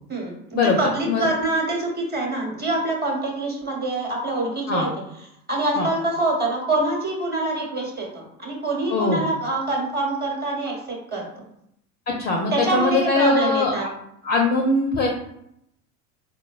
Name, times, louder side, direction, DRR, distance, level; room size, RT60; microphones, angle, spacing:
voice 1, 0.6-4.9 5.5-11.3 12.5-13.9, right 2 dB, 20° right, -1 dB, 1.0 m, -25 dB
voice 2, 8.9-9.2 12.1-13.9 14.2-15.1, left 3 dB, 25° left, 0 dB, 0.4 m, -21 dB
4.2 x 2.1 x 2.3 m, 0.75 s
hypercardioid pair, 85°, 45 cm